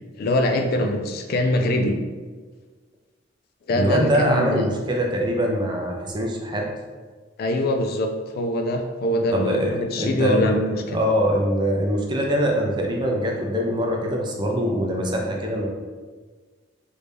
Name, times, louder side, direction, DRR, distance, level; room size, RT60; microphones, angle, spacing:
voice 1, 0.2-2.0 3.7-4.7 7.4-10.8, left 1 dB, 50° left, 5 dB, 0.3 m, -23 dB
voice 2, 3.7-6.6 9.3-10.6 10.9-15.7, equal, 25° right, 0 dB, 0.5 m, -23 dB
3.2 x 2.7 x 3.3 m, 1.4 s
head